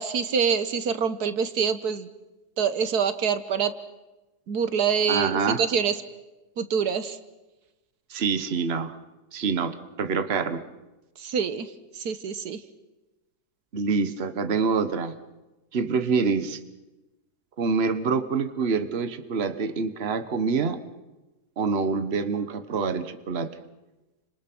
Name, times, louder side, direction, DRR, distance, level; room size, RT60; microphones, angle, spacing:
voice 1, 0.0-2.1 2.6-3.7 4.5-6.0 6.6-7.2 11.2-11.7 12.0-12.6, right 6 dB, 75° right, 11 dB, 1.7 m, -25 dB
voice 2, 5.1-5.6 8.1-9.0 9.3-10.6 13.7-15.2 15.7-16.6 17.6-20.8 21.6-23.6, right 5 dB, 40° right, 10 dB, 1.4 m, -26 dB
30.0 x 26.5 x 6.1 m, 1.1 s
omnidirectional pair, 1.7 m